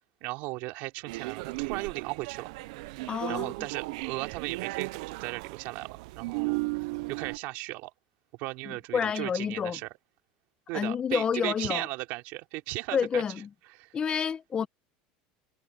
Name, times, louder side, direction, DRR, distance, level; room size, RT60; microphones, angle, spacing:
voice 1, 0.2-2.5 3.3-7.9 8.3-9.9 10.7-13.2 13.7-14.0, right 21 dB, 65° right, 3.0 m, -36 dB
sound 1, 1.1-7.4, right 23 dB, 80° right, 0.4 m, -35 dB
voice 2, 3.1-3.5 8.7-9.8 10.7-11.9 12.9-13.5 13.9-14.7, left 7 dB, 25° left, 1.0 m, -29 dB
supercardioid pair, 135°, 4 cm